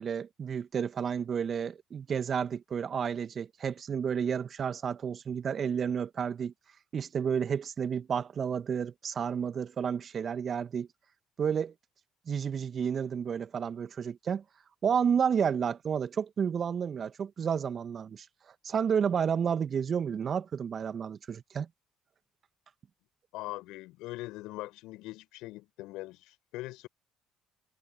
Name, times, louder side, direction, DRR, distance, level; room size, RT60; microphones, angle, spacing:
voice 1, 0.0-6.5 6.9-10.9 11.4-11.7 12.3-14.4 14.8-18.3 18.6-21.7, right 7 dB, 45° right, 2.2 m, -31 dB
voice 2, 23.3-26.9, left 19 dB, 70° left, 7.3 m, -41 dB
hypercardioid pair, 55°, 0 cm